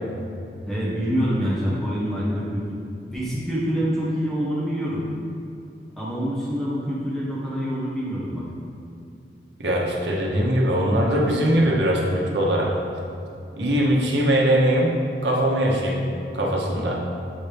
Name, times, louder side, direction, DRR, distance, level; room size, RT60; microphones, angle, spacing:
voice 1, 0.6-2.8 3.1-5.0 6.0-8.4, equal, ahead, -8 dB, 1.2 m, -26 dB
voice 2, 9.6-12.7 13.6-14.9 15.2-16.0 16.3-17.0, right 1 dB, 85° right, -2 dB, 1.0 m, -21 dB
7.3 x 4.3 x 3.4 m, 2.6 s
head